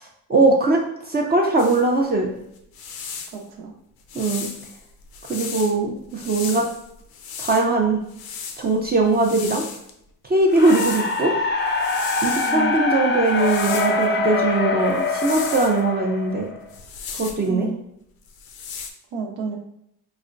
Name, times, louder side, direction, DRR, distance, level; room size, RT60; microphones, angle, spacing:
voice 1, 0.3-2.3 4.1-4.5 5.3-6.7 7.4-8.0 8.6-9.6 10.2-11.3 12.2-16.5 17.2-17.7, right 2 dB, 25° right, -1 dB, 0.5 m, -20 dB
sound 1, 1.6-1.9 2.6-3.4 4.1-5.7 6.1-7.7 8.1-9.9 10.5-11.3 11.6-12.6 13.3-14.1 14.9-15.8 16.7-17.5 18.3-18.9, left 6 dB, 70° left, 0.6 m, -35 dB
voice 2, 3.3-3.7 12.5-13.0 17.4-17.8 19.1-19.6, right 5 dB, 85° right, -2 dB, 0.7 m, -31 dB
sound 2, 10.5-16.7, left 3 dB, 30° left, 0.5 m, -24 dB
4.8 x 2.1 x 2.5 m, 0.75 s
cardioid pair, 105°, 38 cm